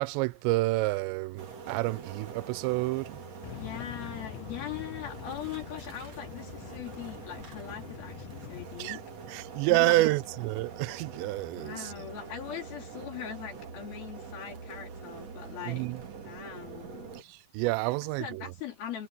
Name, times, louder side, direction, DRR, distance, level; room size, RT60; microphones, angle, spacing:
voice 1, 0.0-3.2 8.8-9.0 9.3-11.9 15.7-16.0 17.5-18.4, right 20 dB, 85° right, 2.6 m, -28 dB
sound 1, 1.4-17.2, right 5 dB, 40° right, 2.8 m, -45 dB
sound 2, 3.4-8.7, left 21 dB, 85° left, 2.9 m, -45 dB
voice 2, 3.5-9.0 9.7-10.1 11.5-16.0 16.2-17.1 18.2-19.1, left 9 dB, 55° left, 4.5 m, -41 dB
omnidirectional pair, 5.4 m